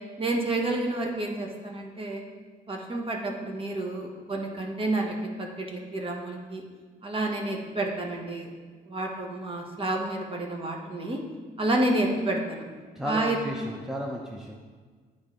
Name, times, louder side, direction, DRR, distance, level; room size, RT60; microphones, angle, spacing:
voice 1, 0.2-2.2 2.7-6.6 7.0-8.5 8.9-11.2 11.6-12.6 13.0-13.4, right 2 dB, 35° right, 0 dB, 1.3 m, -29 dB
voice 2, 13.0-14.5, equal, 5° right, -1 dB, 0.8 m, -34 dB
9.7 x 4.0 x 3.8 m, 1.5 s
cardioid pair, 80°, 17 cm